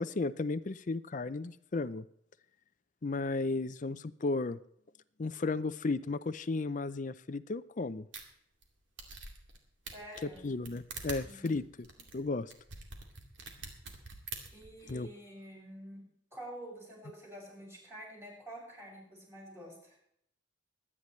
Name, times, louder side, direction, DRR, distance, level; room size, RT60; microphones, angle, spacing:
voice 1, 0.0-2.0 3.0-4.6 5.2-8.1 10.2-11.6 12.1-12.5 14.9-15.1, left 3 dB, 40° left, 14 dB, 0.5 m, -34 dB
sound 1, 8.1-8.2 8.6-8.7 9.0-9.6 9.9-14.9, right 4 dB, 65° right, 2.4 m, -45 dB
voice 2, 9.9-10.5 11.2-11.6 14.5-16.0 16.3-20.0, right 1 dB, 15° right, -3 dB, 5.9 m, -48 dB
23.5 x 9.9 x 3.2 m, 0.71 s
head